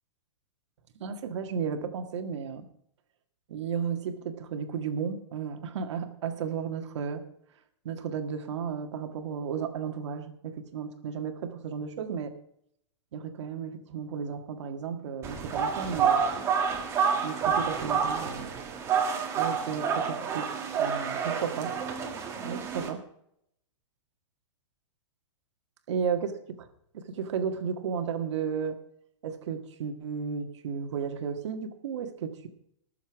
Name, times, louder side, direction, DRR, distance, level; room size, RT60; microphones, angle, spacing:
voice 1, 1.0-2.7 3.5-7.2 7.9-12.3 13.1-16.2 17.2-18.5 19.4-20.5 20.8-21.7 22.4-23.0 25.9-26.3 26.9-28.8 29.2-32.5, right 6 dB, 60° right, 7 dB, 1.8 m, -33 dB
sound 1, 15.2-22.9, right 6 dB, 15° right, 1.6 m, -29 dB
19.0 x 7.2 x 4.7 m, 0.73 s
hypercardioid pair, 165°, 17 cm